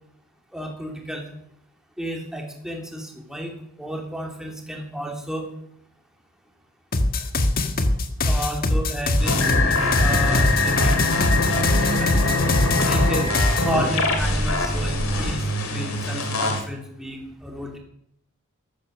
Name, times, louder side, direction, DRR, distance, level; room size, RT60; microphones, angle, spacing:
voice 1, 0.5-1.3 2.0-5.5 8.2-12.4 12.9-13.4 13.6-15.4 15.7-17.8, equal, ahead, 1 dB, 2.8 m, -32 dB
sound 1, 6.9-13.7, left 2 dB, 45° left, 1.5 m, -22 dB
sound 2, 9.2-16.6, left 2 dB, 70° left, 2.8 m, -23 dB
14.5 x 12.5 x 6.5 m, 0.71 s
head